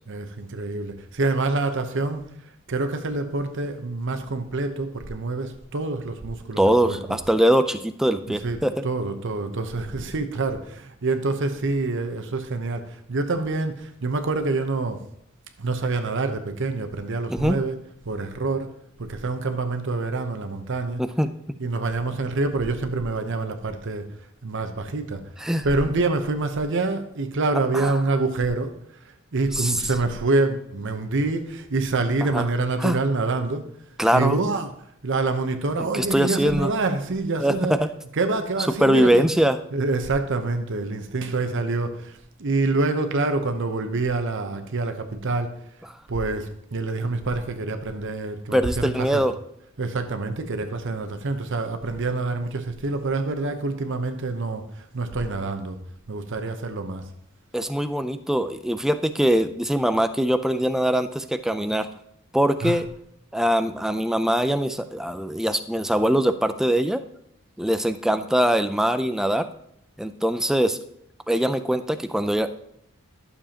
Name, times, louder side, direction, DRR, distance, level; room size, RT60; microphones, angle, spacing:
voice 1, 0.1-2.2 2.7-7.2 8.3-8.6 8.8-15.0 15.6-17.8 18.0-18.7 19.0-21.0 21.6-24.1 24.4-25.2 25.6-28.7 29.0-33.7 34.1-34.7 35.0-37.7 38.2-39.3 39.7-45.5 46.1-49.2 49.8-55.8 56.1-57.1 62.6-62.8, right 3 dB, 60° right, 7 dB, 0.8 m, -26 dB
voice 2, 6.6-8.8 17.3-17.6 21.0-21.6 25.4-25.7 27.7-27.9 29.5-29.8 32.3-32.4 32.8-33.0 34.0-34.4 35.8-36.7 37.4-37.5 37.8-37.9 38.8-39.6 48.5-49.3 57.5-61.9 62.3-62.9 63.3-67.0 67.6-69.5 70.0-70.8 71.3-72.6, equal, ahead, 10 dB, 0.3 m, -22 dB
11.5 x 6.9 x 2.9 m, 0.75 s
head